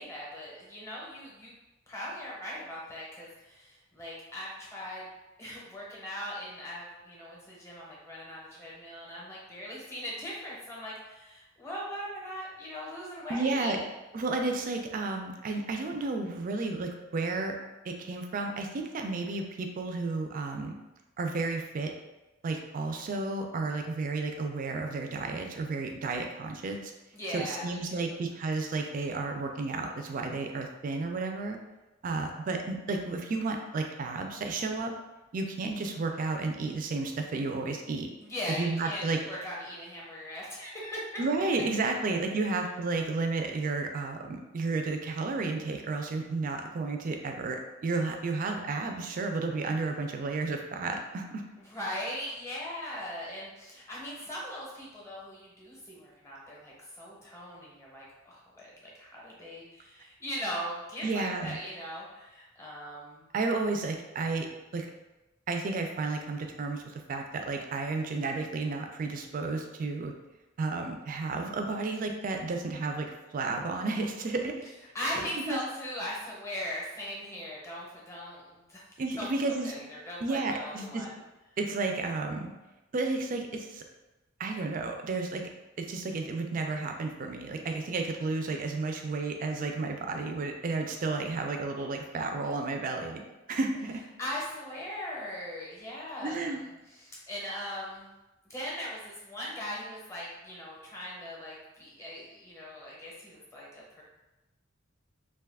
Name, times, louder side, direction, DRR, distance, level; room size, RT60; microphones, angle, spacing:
voice 1, 0.0-1.5 1.9-5.1 5.4-13.8 27.1-28.2 38.2-41.1 42.4-42.5 51.6-63.3 74.9-78.8 79.2-81.1 94.2-98.1 98.4-104.0, equal, 15° left, -4 dB, 0.7 m, -39 dB
voice 2, 13.3-13.8 14.1-17.6 17.9-20.7 21.2-21.9 22.4-26.9 27.3-31.6 32.0-34.9 35.3-38.1 38.5-39.2 41.2-51.4 61.0-61.6 63.3-64.5 64.7-64.9 65.5-66.8 67.1-70.1 70.6-74.5 75.0-75.6 79.0-79.7 80.2-81.0 81.6-82.5 82.9-83.8 84.4-85.4 85.8-93.2 93.5-94.0 96.2-96.6, right 3 dB, 40° right, 4 dB, 0.3 m, -32 dB
2.6 x 2.3 x 3.4 m, 1.0 s
head